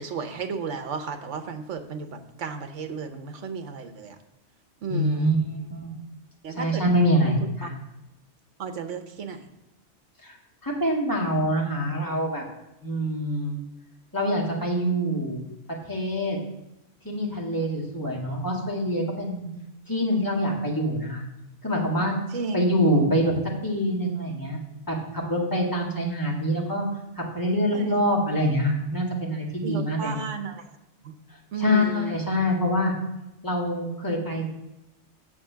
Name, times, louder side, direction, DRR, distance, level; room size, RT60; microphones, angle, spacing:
voice 1, 0.0-4.2 4.8-5.4 6.4-6.8 7.2-7.3 7.6-7.7 8.6-9.5 22.3-22.6 27.7-28.0 29.6-30.7 31.0-31.1 31.5-32.1, right 5 dB, 80° right, 8 dB, 1.3 m, -33 dB
voice 2, 4.9-5.4 5.7-6.0 6.6-7.7 10.2-10.4 10.6-12.4 12.8-13.6 14.1-15.4 15.9-16.4 17.0-19.5 19.9-21.2 21.6-22.1 22.5-23.3 23.6-24.6 24.9-26.9 27.2-30.1 31.6-32.9 33.4-34.5, equal, 15° left, -2 dB, 1.9 m, -25 dB
7.5 x 7.3 x 5.7 m, 0.93 s
omnidirectional pair, 1.2 m